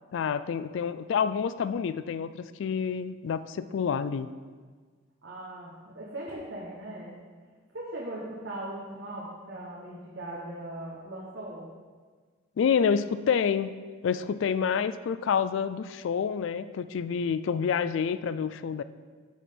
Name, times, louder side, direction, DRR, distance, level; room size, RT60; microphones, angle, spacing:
voice 1, 0.1-4.3 12.6-13.7 14.0-18.8, left 7 dB, 65° left, 13 dB, 0.3 m, -28 dB
voice 2, 5.2-11.7, right 1 dB, 60° right, -6 dB, 1.3 m, -39 dB
6.3 x 6.1 x 5.1 m, 1.5 s
head